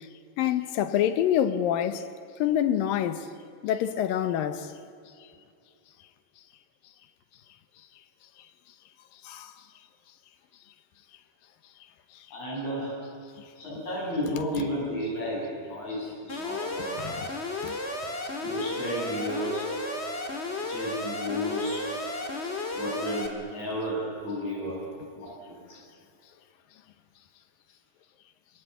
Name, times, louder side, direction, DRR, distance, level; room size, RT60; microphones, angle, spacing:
voice 1, 0.4-2.0 2.4-3.3 3.6-4.7 9.2-9.5 17.0-17.3 17.6-17.8, left 10 dB, 85° left, 2.8 m, -26 dB
voice 2, 12.3-13.0 13.6-17.0 18.4-19.6 20.7-21.8 22.7-24.8 25.1-25.4, equal, 55° left, 9.1 m, -32 dB
Alarm, 16.3-23.3, left 2 dB, 25° left, 1.8 m, -33 dB
27.0 x 22.5 x 8.2 m
omnidirectional pair, 3.9 m